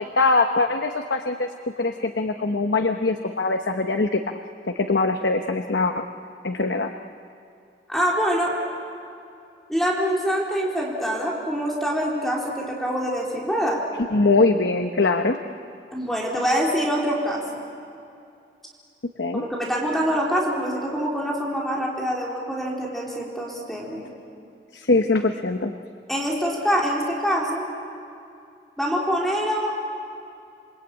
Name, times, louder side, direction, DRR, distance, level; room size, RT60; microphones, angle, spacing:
voice 1, 0.0-1.5 1.8-4.2 4.7-6.0 6.4-6.9 14.1-15.4 19.2-19.4 24.7-25.7, left 3 dB, 85° left, 6 dB, 1.0 m, -22 dB
voice 2, 7.9-8.6 9.7-13.8 15.9-17.6 19.3-24.1 26.1-27.7 28.8-29.7, equal, ahead, -4 dB, 4.0 m, -25 dB
28.0 x 23.5 x 8.9 m, 2.5 s
head